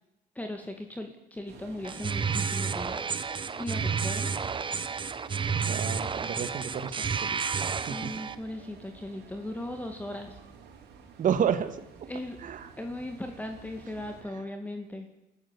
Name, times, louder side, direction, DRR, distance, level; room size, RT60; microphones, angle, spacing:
voice 1, 0.4-3.1 3.6-4.3 7.9-10.4 12.1-12.4 12.8-15.1, left 1 dB, 10° left, 5 dB, 2.3 m, -38 dB
sound 1, 1.5-14.2, right 6 dB, 80° right, 5.4 m, -50 dB
sound 2, 1.8-8.4, right 5 dB, 30° right, 1.4 m, -31 dB
voice 2, 5.6-7.4 7.9-8.1 11.2-11.8 12.4-12.7, right 8 dB, 50° right, 10 dB, 2.2 m, -30 dB
26.0 x 14.5 x 9.9 m, 0.96 s
cardioid pair, 110°, 17 cm